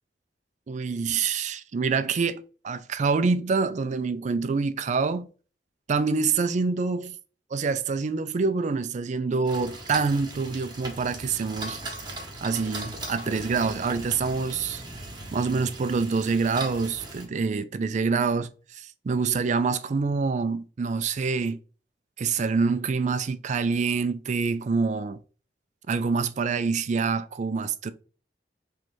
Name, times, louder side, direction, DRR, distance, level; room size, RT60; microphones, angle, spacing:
voice 1, 0.7-5.3 5.9-7.1 7.5-11.8 12.4-14.8 15.3-21.6 22.2-25.2 25.9-27.9, right 4 dB, 45° right, 0.4 m, -26 dB
sound 1, 9.4-17.3, right 2 dB, 25° right, 1.1 m, -38 dB
3.2 x 3.1 x 4.0 m
head